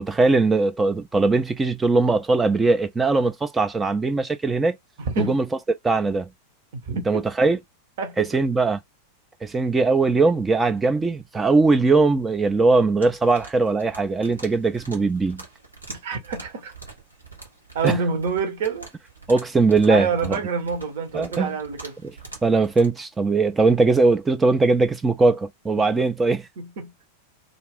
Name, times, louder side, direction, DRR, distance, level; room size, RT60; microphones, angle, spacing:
voice 1, 0.0-4.8 5.2-5.4 5.8-6.3 7.1-7.6 8.2-8.8 9.4-15.4 17.8-18.0 19.3-20.4 21.1-21.5 22.0-22.1 22.4-26.5, right 3 dB, 15° right, 0.3 m, -20 dB
voice 2, 5.0-5.4 6.7-7.2 8.0-8.3 15.9-16.7 17.7-18.9 19.9-22.0 26.6-26.9, right 4 dB, 55° right, 0.9 m, -27 dB
sound 1, 13.0-22.9, right 3 dB, 85° right, 1.1 m, -44 dB
2.5 x 2.4 x 3.4 m
figure-of-eight pair, 90°, 0 cm